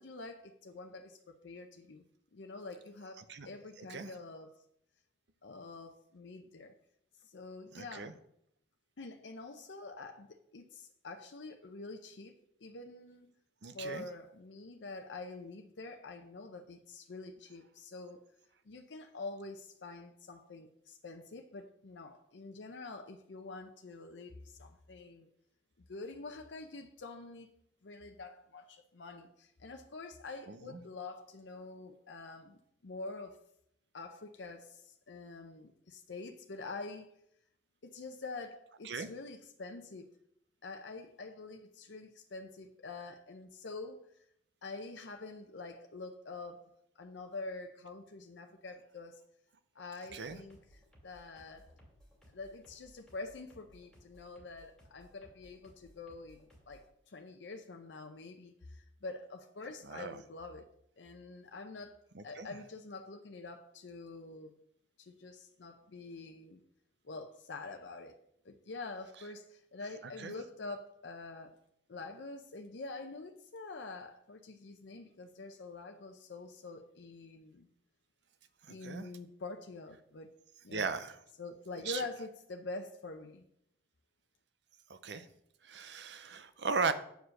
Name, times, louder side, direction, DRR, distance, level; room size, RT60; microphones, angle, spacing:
voice 1, 0.0-2.0 2.3-4.6 5.4-6.7 7.2-8.2 9.0-12.3 12.6-13.3 13.7-18.2 18.7-25.3 25.9-27.5 27.8-33.4 33.9-37.1 37.8-40.1 40.6-44.1 44.6-49.2 49.7-50.6 51.0-51.7 52.3-60.7 61.0-64.5 65.0-66.6 67.0-68.1 68.4-71.6 71.9-77.7 78.7-80.3 80.6-80.9 81.4-83.4, left 3 dB, 80° left, 4 dB, 0.6 m, -46 dB
voice 2, 3.8-4.1 7.7-8.1 13.6-14.0 30.5-30.8 38.8-39.1 50.1-50.4 59.8-60.2 62.1-62.5 70.2-70.3 78.6-79.1 80.7-81.2 81.8-82.0 84.9-85.3 85.6-86.9, right 4 dB, 70° right, 11 dB, 0.7 m, -37 dB
sound 1, 50.1-56.9, equal, 5° left, 2.6 m, -62 dB
7.9 x 4.8 x 6.4 m, 0.73 s
head